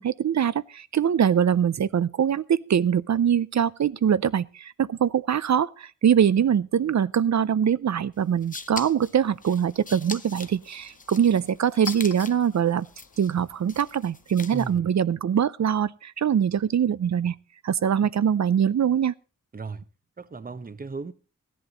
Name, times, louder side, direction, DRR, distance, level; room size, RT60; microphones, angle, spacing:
voice 1, 0.0-12.9 13.2-17.3 17.6-19.1, right 8 dB, 60° right, 0.5 m, -23 dB
sound 1, 8.2-14.8, left 3 dB, 25° left, 0.8 m, -42 dB
Chink clink, 8.9-14.4, left 5 dB, 75° left, 1.4 m, -46 dB
voice 2, 14.5-14.9 19.5-19.8 20.2-21.1, right 4 dB, 30° right, 0.7 m, -36 dB
16.0 x 11.0 x 3.9 m
wide cardioid pair, 110°, 32 cm